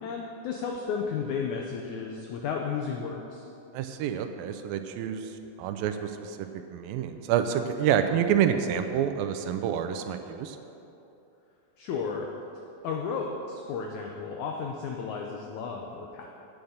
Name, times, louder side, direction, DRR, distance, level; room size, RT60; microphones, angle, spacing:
voice 1, 0.0-3.5 11.8-12.3 12.8-16.3, left 5 dB, 85° left, 1 dB, 1.7 m, -33 dB
voice 2, 3.7-5.3 5.6-6.4 6.7-10.6, right 9 dB, 80° right, 8 dB, 2.2 m, -28 dB
9.1 x 7.2 x 6.6 m, 2.9 s
omnidirectional pair, 4.3 m